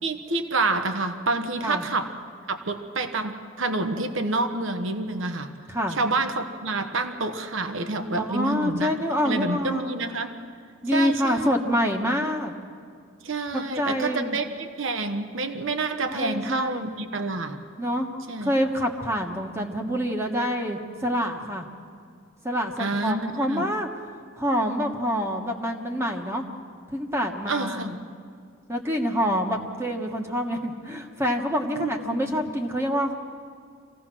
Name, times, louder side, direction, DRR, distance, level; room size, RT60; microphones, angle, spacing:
voice 1, 0.0-2.1 2.5-5.5 6.0-8.9 9.2-10.3 10.9-11.5 13.2-17.6 18.3-18.5 22.8-23.6 27.5-28.0 31.7-32.5, right 3 dB, 65° right, 7 dB, 1.2 m, -28 dB
voice 2, 8.2-10.0 10.8-12.5 13.5-14.4 16.1-16.9 17.8-18.1 18.4-21.7 22.4-24.0 24.3-26.4 26.9-27.9 28.7-33.1, equal, 10° right, 2 dB, 1.3 m, -26 dB
25.5 x 16.5 x 6.2 m, 2.3 s
head